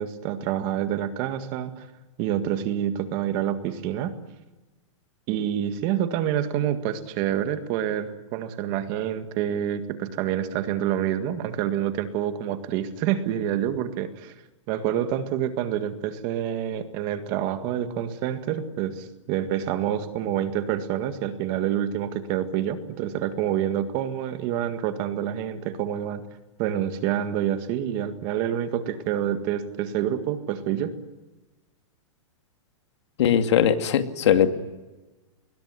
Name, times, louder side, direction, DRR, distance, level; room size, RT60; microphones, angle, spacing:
voice 1, 0.0-1.9 2.2-4.1 5.3-14.3 14.7-26.2 26.6-30.9, right 10 dB, 30° right, 9 dB, 1.8 m, -27 dB
voice 2, 33.2-34.5, left 9 dB, 60° left, 8 dB, 2.4 m, -20 dB
27.0 x 21.5 x 9.7 m, 1.1 s
supercardioid pair, 170°, 16 cm